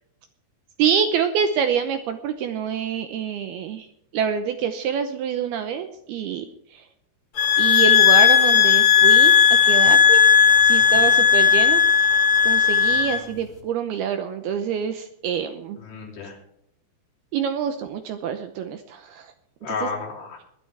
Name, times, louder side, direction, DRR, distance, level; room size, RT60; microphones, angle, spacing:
voice 1, 0.8-3.9 4.1-6.5 6.7-6.8 7.6-9.4 9.6-10.3 10.7-11.8 12.5-15.8 17.3-19.3 19.7-19.9, right 8 dB, 75° right, 8 dB, 2.5 m, -26 dB
sound 1, 7.4-13.2, left 8 dB, 40° left, 2.4 m, -15 dB
voice 2, 12.9-13.5 15.8-16.4 19.6-20.4, left 4 dB, 60° left, -2 dB, 5.5 m, -33 dB
21.5 x 11.0 x 3.4 m, 0.74 s
omnidirectional pair, 5.2 m